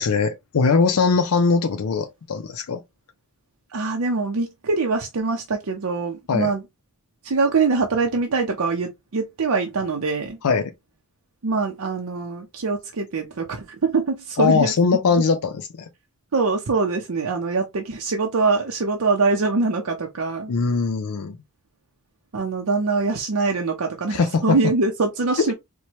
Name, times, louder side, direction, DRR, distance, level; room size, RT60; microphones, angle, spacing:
voice 1, 0.0-2.8 6.3-6.5 10.4-10.7 14.4-15.9 20.5-21.4 24.1-24.6, left 4 dB, 80° left, 0.5 m, -21 dB
voice 2, 3.7-6.6 7.2-10.4 11.4-14.7 16.3-20.5 22.3-25.5, right 4 dB, 70° right, 0.6 m, -23 dB
4.4 x 2.2 x 2.8 m
head